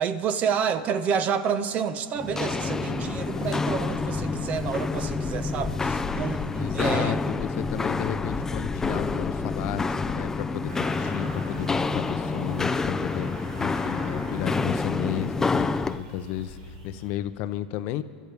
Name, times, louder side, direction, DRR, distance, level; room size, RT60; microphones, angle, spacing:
voice 1, 0.0-7.2, right 7 dB, 40° right, 12 dB, 0.9 m, -29 dB
Walk footsteps, 2.2-16.0, left 3 dB, 10° left, 0.5 m, -28 dB
sound 1, 2.4-10.9, left 5 dB, 30° left, 1.3 m, -37 dB
voice 2, 6.5-18.0, left 12 dB, 55° left, 12 dB, 0.7 m, -33 dB
sound 2, 10.7-17.1, right 1 dB, 70° right, 3.2 m, -43 dB
25.0 x 13.0 x 3.5 m, 2.4 s
hypercardioid pair, 105°, 4 cm